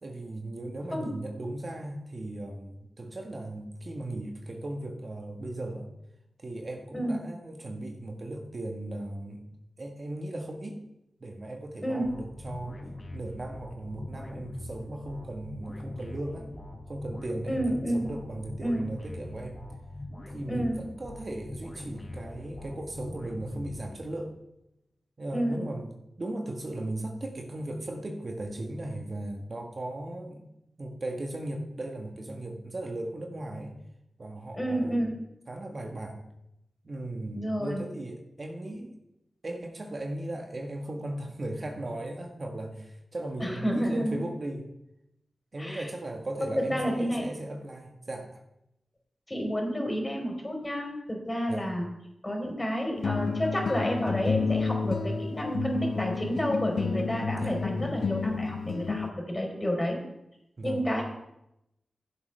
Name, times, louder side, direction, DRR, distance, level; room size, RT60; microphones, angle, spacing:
voice 1, 0.0-5.9 6.4-9.5 9.8-10.8 11.2-12.9 13.1-16.5 16.9-19.7 20.3-24.3 25.2-30.5 30.8-33.7 34.2-35.0 35.5-36.2 36.8-39.0 39.4-44.7 45.5-48.4 51.5-51.7 57.3-57.7 60.6-61.0, right 1 dB, 50° right, 2 dB, 1.5 m, -37 dB
sound 1, 12.0-24.3, left 1 dB, 45° left, 3.3 m, -42 dB
voice 2, 17.5-18.1 18.6-18.9 20.5-20.8 25.3-25.6 34.5-35.1 37.3-37.8 43.4-44.2 45.6-45.9 46.4-47.3 49.3-51.9 52.2-60.0 60.6-61.0, equal, 25° left, 0 dB, 4.1 m, -30 dB
sound 2, 53.0-59.1, left 4 dB, 75° left, 0.6 m, -30 dB
15.5 x 7.5 x 3.4 m, 0.85 s
cardioid pair, 45°, 0 cm